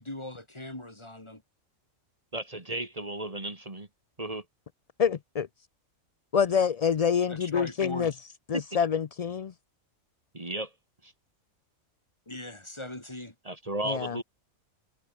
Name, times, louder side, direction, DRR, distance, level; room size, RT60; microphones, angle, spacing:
voice 1, 0.0-1.4 7.3-8.1 12.3-13.3, left 1 dB, 20° left, 2.6 m, -39 dB
voice 2, 2.3-3.9 4.2-4.4 8.5-8.6 10.3-10.7 11.0-11.1 13.5-14.2, right 1 dB, 25° right, 2.1 m, -34 dB
voice 3, 5.0-5.5 6.3-8.1 8.5-9.5 13.9-14.2, left 7 dB, 75° left, 0.3 m, -26 dB
omnidirectional pair, 1.4 m